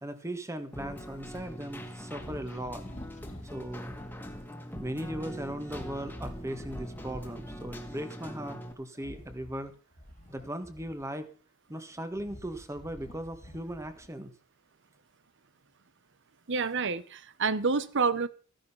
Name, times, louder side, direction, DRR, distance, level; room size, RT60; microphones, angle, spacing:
voice 1, 0.0-2.8 3.5-3.9 4.7-9.7 10.3-11.3 11.7-14.3, right 1 dB, 15° right, 9 dB, 1.6 m, -38 dB
Keyboard (musical), 0.7-8.7, equal, 10° left, 1.9 m, -42 dB
sound 1, 2.1-4.5 5.6-8.0 8.9-11.3 11.8-14.2, equal, 35° left, 2.1 m, -49 dB
voice 2, 16.5-18.3, right 4 dB, 55° right, 16 dB, 1.0 m, -28 dB
15.5 x 10.5 x 5.7 m, 0.38 s
head